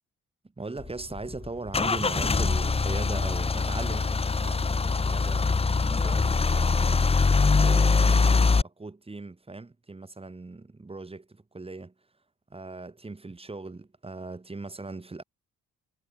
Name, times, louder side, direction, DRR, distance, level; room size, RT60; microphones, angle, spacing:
voice 1, 0.6-7.1 7.6-11.9 12.5-15.2, right 3 dB, 20° right, 3.1 m, -39 dB
Car / Engine starting / Idling, 0.8-8.6, left 4 dB, 20° left, 0.9 m, -23 dB
cardioid pair, 90°, 30 cm